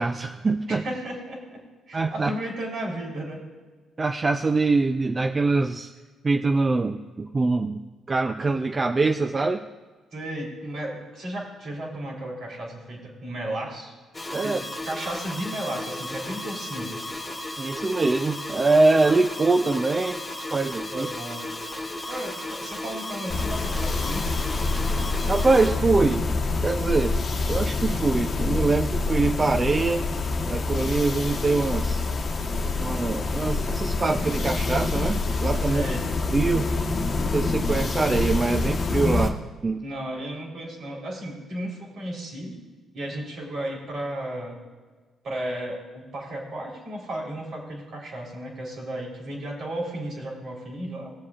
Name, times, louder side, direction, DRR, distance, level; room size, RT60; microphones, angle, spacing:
voice 1, 0.0-0.8 1.9-2.3 4.0-5.9 6.2-9.6 14.3-14.6 17.6-21.1 25.3-26.3 26.6-27.1 27.5-30.1 30.5-32.1 32.8-35.8 36.3-36.7 37.3-39.8, right 3 dB, 30° right, 6 dB, 0.4 m, -24 dB
voice 2, 0.7-1.6 1.9-3.4 10.1-13.9 14.4-16.9 20.9-21.5 22.1-24.4 35.6-36.0 39.8-42.6 42.9-44.6 45.2-51.1, right 1 dB, 65° right, -2 dB, 3.4 m, -34 dB
sound 1, 14.1-25.7, left 1 dB, 15° left, 1.9 m, -35 dB
sound 2, 23.3-39.3, left 3 dB, 45° left, 1.1 m, -26 dB
20.0 x 7.5 x 2.4 m, 1.4 s
cardioid pair, 90°, 0 cm